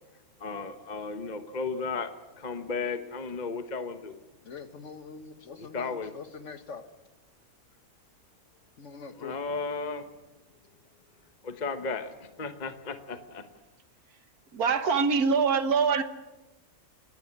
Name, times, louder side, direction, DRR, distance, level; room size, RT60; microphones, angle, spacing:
voice 1, 0.4-4.2 5.6-6.1 9.2-10.1 11.4-13.5, left 4 dB, 30° left, 8 dB, 1.2 m, -34 dB
voice 2, 4.4-6.8 8.8-9.4, left 5 dB, 50° left, 9 dB, 1.7 m, -43 dB
voice 3, 14.5-16.0, right 5 dB, 75° right, 10 dB, 1.8 m, -24 dB
28.5 x 11.5 x 9.7 m, 1.1 s
omnidirectional pair, 1.6 m